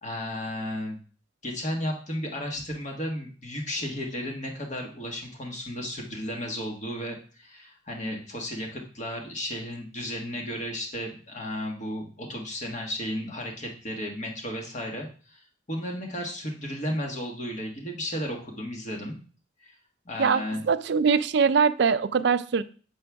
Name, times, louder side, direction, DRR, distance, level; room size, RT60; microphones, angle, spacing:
voice 1, 0.0-1.0 1.4-15.4 15.7-19.2 19.6-19.7 20.0-20.6, equal, 35° left, 1 dB, 1.4 m, -34 dB
voice 2, 20.2-22.6, right 5 dB, 55° right, 12 dB, 0.4 m, -22 dB
7.6 x 6.2 x 3.4 m, 0.39 s
head